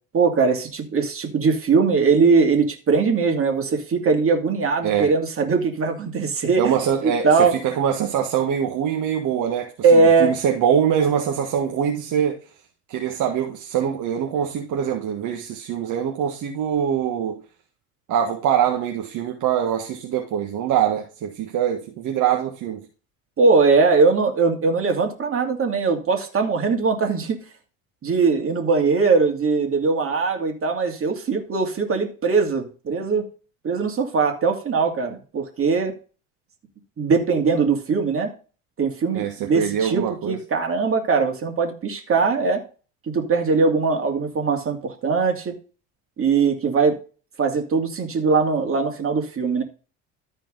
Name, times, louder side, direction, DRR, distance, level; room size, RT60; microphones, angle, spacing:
voice 1, 0.1-6.7 7.0-7.5 9.8-10.3 23.4-27.4 28.0-33.2 33.6-35.9 37.0-38.3 38.8-42.6 43.1-45.5 46.2-47.0 47.4-49.6, right 4 dB, 35° right, 2.8 m, -20 dB
voice 2, 6.6-12.4 12.9-17.4 18.1-22.9 39.1-40.4, right 8 dB, 55° right, 1.6 m, -23 dB
13.5 x 4.6 x 3.9 m
supercardioid pair, 95°, 37 cm